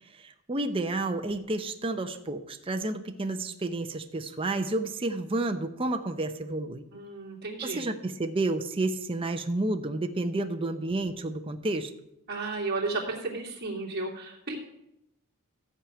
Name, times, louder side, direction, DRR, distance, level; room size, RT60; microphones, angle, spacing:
voice 1, 0.0-6.8 7.6-11.9, right 2 dB, 25° right, 6 dB, 0.6 m, -30 dB
voice 2, 6.9-7.8 12.3-14.6, right 3 dB, 45° right, -2 dB, 2.7 m, -33 dB
14.5 x 4.9 x 8.9 m, 0.85 s
head